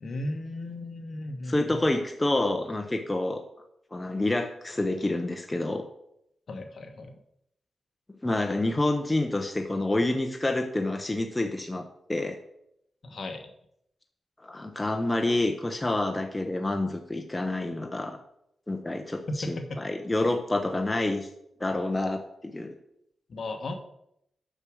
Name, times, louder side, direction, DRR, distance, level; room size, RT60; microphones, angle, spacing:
voice 1, 0.0-1.8 6.5-7.2 13.0-13.5 19.3-19.8 23.3-23.7, left 2 dB, 50° left, 5 dB, 1.1 m, -35 dB
voice 2, 1.5-3.4 3.9-5.9 8.2-12.4 14.4-18.2 18.7-21.3 21.6-22.8, left 2 dB, 15° left, 5 dB, 0.7 m, -28 dB
6.6 x 6.0 x 6.2 m, 0.77 s
wide cardioid pair, 140°, 0 cm